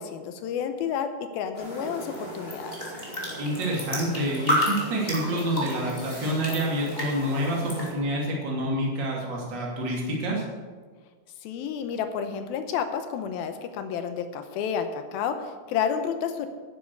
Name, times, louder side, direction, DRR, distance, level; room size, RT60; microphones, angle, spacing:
voice 1, 0.0-2.9 11.4-16.5, left 7 dB, 75° left, 8 dB, 2.4 m, -30 dB
sound 1, 1.5-7.9, equal, 15° left, 2.4 m, -32 dB
voice 2, 3.4-10.4, equal, 30° right, -2 dB, 2.7 m, -28 dB
10.5 x 10.5 x 6.8 m, 1.5 s
omnidirectional pair, 5.0 m